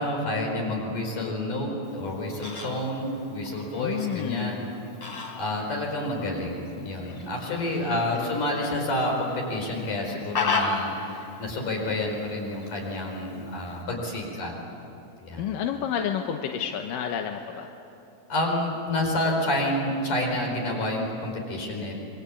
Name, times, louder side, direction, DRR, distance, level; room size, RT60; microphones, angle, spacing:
voice 1, 0.0-4.7 5.0-14.5 15.2-15.6 18.3-22.0, left 1 dB, 55° left, 0 dB, 6.1 m, -29 dB
Fowl, 1.8-13.8, left 4 dB, 35° left, 3.6 m, -36 dB
voice 2, 3.8-4.6 7.5-8.7 15.4-17.7, left 8 dB, 70° left, 4 dB, 2.4 m, -31 dB
26.5 x 24.0 x 8.4 m, 2.7 s
omnidirectional pair, 4.6 m